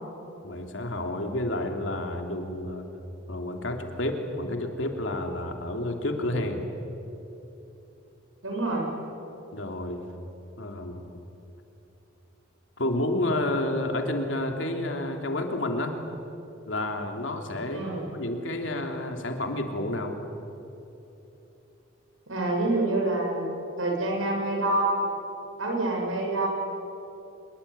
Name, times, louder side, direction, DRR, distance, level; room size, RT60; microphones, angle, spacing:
voice 1, 0.4-2.8 3.3-6.6 9.5-10.0 10.6-11.0 12.8-16.0 16.7-17.9 18.1-20.2, left 1 dB, 70° left, 4 dB, 3.2 m, -30 dB
voice 2, 8.4-8.9 17.7-18.0 22.3-23.5 23.8-25.0 25.6-26.5, right 2 dB, 85° right, 0 dB, 7.7 m, -26 dB
26.0 x 22.5 x 9.9 m, 3.0 s
head